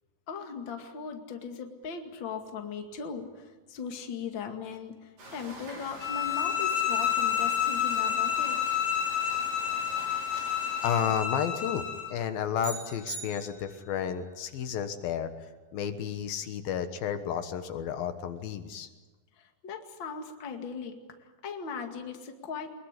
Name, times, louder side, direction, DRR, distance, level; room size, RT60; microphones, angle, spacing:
voice 1, 0.3-8.8 19.4-22.7, left 6 dB, 35° left, 4 dB, 2.5 m, -39 dB
sound 1, 5.2-11.0, right 1 dB, 65° right, 7.9 m, -46 dB
sound 2, 6.0-12.1, left 9 dB, 55° left, 4.3 m, -29 dB
voice 2, 10.3-11.8 12.1-15.3 15.7-18.9, left 8 dB, 80° left, 9 dB, 3.1 m, -32 dB
sound 3, 12.6-14.0, right 3 dB, 45° right, 8.9 m, -41 dB
23.5 x 21.5 x 9.8 m, 1.2 s
omnidirectional pair, 4.2 m